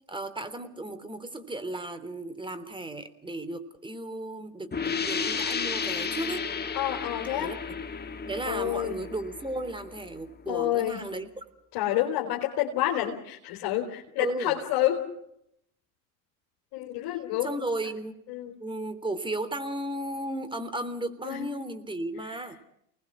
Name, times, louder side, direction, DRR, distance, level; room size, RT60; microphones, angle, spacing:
voice 1, 0.1-6.5 7.4-7.6 8.3-11.4 14.2-14.6 17.4-18.2 18.6-22.6, right 1 dB, 10° right, 10 dB, 3.5 m, -35 dB
sound 1, 4.7-10.2, left 6 dB, 20° left, 2.0 m, -33 dB
voice 2, 6.7-7.6 8.5-9.0 10.5-11.1 11.7-15.1 16.7-17.6 18.3-18.5 21.2-21.5, left 13 dB, 60° left, -1 dB, 3.8 m, -29 dB
30.0 x 20.0 x 6.2 m, 0.76 s
hypercardioid pair, 80°, 44 cm